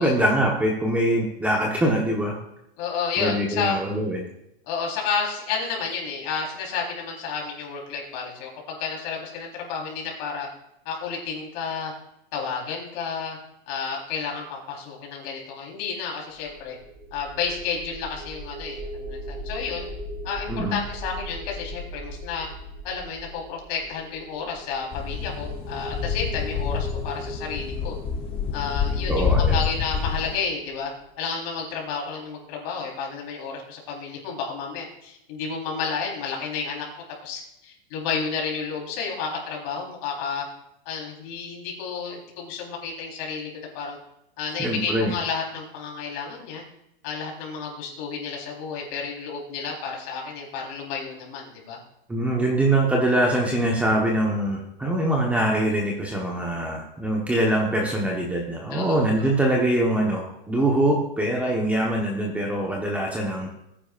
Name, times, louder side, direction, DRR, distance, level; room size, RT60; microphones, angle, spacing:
voice 1, 0.0-2.3 3.2-4.3 20.5-20.8 29.1-29.6 44.6-45.1 52.1-63.5, right 1 dB, 5° right, -2 dB, 1.1 m, -23 dB
voice 2, 2.8-3.8 4.7-10.5 10.9-11.9 12.3-13.4 13.7-16.8 17.1-19.9 20.2-22.5 22.8-28.0 28.5-30.9 31.2-36.9 37.2-40.4 40.9-44.0 44.4-46.6 47.0-51.8 58.7-59.0 59.2-59.3, left 5 dB, 45° left, -1 dB, 4.1 m, -31 dB
sound 1, 16.4-31.5, equal, 25° right, 2.7 m, -39 dB
sound 2, 24.9-30.3, left 6 dB, 20° left, 0.7 m, -27 dB
19.0 x 10.0 x 2.5 m, 0.81 s
supercardioid pair, 160°, 29 cm